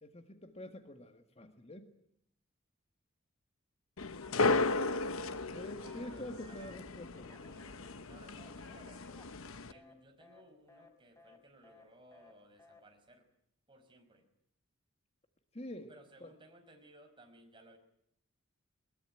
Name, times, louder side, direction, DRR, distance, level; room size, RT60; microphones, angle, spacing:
voice 1, 0.0-1.9 5.5-7.3 15.5-15.9 16.2-16.3, left 1 dB, 30° left, 7 dB, 1.7 m, -47 dB
sound 1, 4.0-9.7, left 3 dB, 90° left, 1.1 m, -35 dB
Telephone, 4.2-4.8 5.1-6.8 7.1-9.9 10.2-10.4 10.7-10.9 11.2-11.4 11.6-11.8 12.1-12.3 12.6-12.8, left 2 dB, 15° left, 3.4 m, -60 dB
voice 2, 5.6-6.7 8.1-9.0 9.7-13.3 13.7-14.2 15.9-17.8, right 1 dB, 25° right, 4 dB, 5.4 m, -60 dB
21.5 x 21.5 x 9.1 m, 0.75 s
head